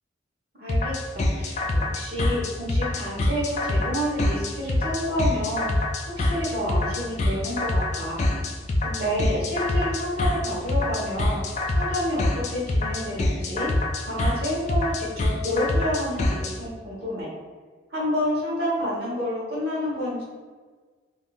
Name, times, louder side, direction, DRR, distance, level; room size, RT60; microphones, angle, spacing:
voice 1, 0.6-8.2 8.8-13.7 14.0-17.3 17.9-20.2, equal, 60° right, -6 dB, 1.1 m, -29 dB
sound 1, 0.7-16.5, left 1 dB, 40° left, 0.3 m, -25 dB
3.6 x 2.4 x 2.4 m, 1.4 s
head